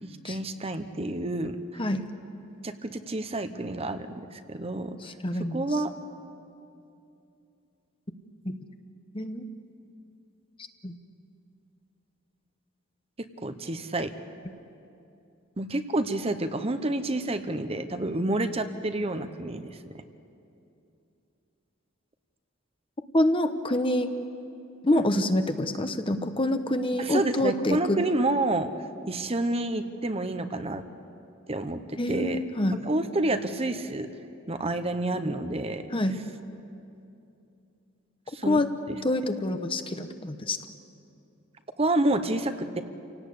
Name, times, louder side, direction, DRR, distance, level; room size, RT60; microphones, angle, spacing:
voice 1, 0.0-1.8 2.6-5.1 5.5-5.9 13.4-14.1 15.6-19.7 24.9-25.0 27.0-28.7 29.1-30.8 31.5-32.4 32.8-34.1 34.5-35.9 38.3-38.6 41.8-42.8, right 2 dB, 30° right, 9 dB, 0.9 m, -29 dB
voice 2, 5.0-5.6 8.4-8.6 9.1-9.5 10.8-10.9 23.1-24.1 24.8-28.0 32.0-32.8 35.9-36.2 38.5-38.7 39.0-40.6, left 1 dB, 25° left, 8 dB, 1.0 m, -26 dB
28.5 x 18.0 x 8.4 m, 2.7 s
head